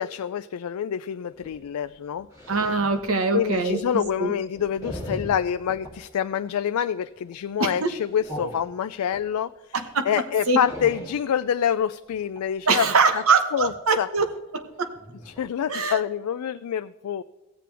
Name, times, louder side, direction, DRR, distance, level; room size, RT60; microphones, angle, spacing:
voice 1, 0.0-2.3 3.3-9.5 10.0-12.9 13.1-13.2 13.5-14.1 15.3-17.2, left 8 dB, 85° left, 11 dB, 0.3 m, -26 dB
sound 1, 1.2-6.0 6.4-6.7 7.0-7.3 7.8-9.3 9.8-9.9 10.1-11.3 12.1-12.5 13.6-13.8 14.2-14.3 14.6-14.7 14.9-15.4 15.8-16.0, equal, 15° right, 3.1 m, -40 dB
voice 2, 2.5-4.3 7.6-7.9 9.7-10.1 10.5-10.6 12.7-14.3 14.5-14.9 15.7-16.0, right 4 dB, 70° right, 7 dB, 1.2 m, -23 dB
16.5 x 7.6 x 3.4 m, 1.1 s
head